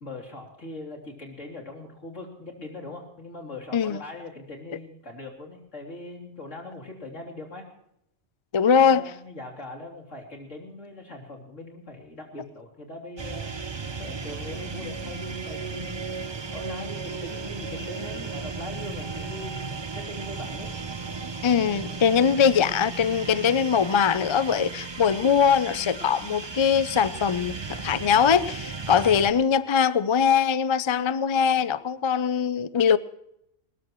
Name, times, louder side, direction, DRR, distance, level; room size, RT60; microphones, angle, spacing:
voice 1, 0.0-7.7 8.7-13.5 14.0-16.1 16.5-20.7, left 2 dB, 70° left, 3.7 m, -41 dB
voice 2, 8.5-9.0 21.4-27.5 27.8-33.0, left 7 dB, 40° left, 0.4 m, -22 dB
sound 1, 13.2-29.3, right 4 dB, 25° right, 0.6 m, -35 dB
20.5 x 19.5 x 3.1 m
omnidirectional pair, 1.3 m